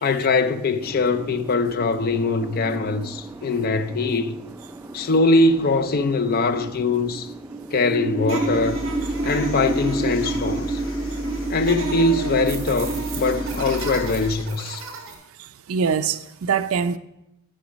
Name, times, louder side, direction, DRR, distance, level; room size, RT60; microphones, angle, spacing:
voice 1, 0.0-4.4 4.9-7.3 7.7-8.8 9.2-10.8 11.5-14.8, left 3 dB, 45° left, 0.5 m, -22 dB
sound 1, 0.8-13.9, right 2 dB, 10° right, 0.4 m, -31 dB
sound 2, 8.2-15.1, right 4 dB, 65° right, 1.7 m, -36 dB
sound 3, 8.3-14.5, equal, 65° left, 0.9 m, -35 dB
voice 2, 15.4-17.0, right 6 dB, 85° right, 0.5 m, -24 dB
10.0 x 5.2 x 5.1 m
head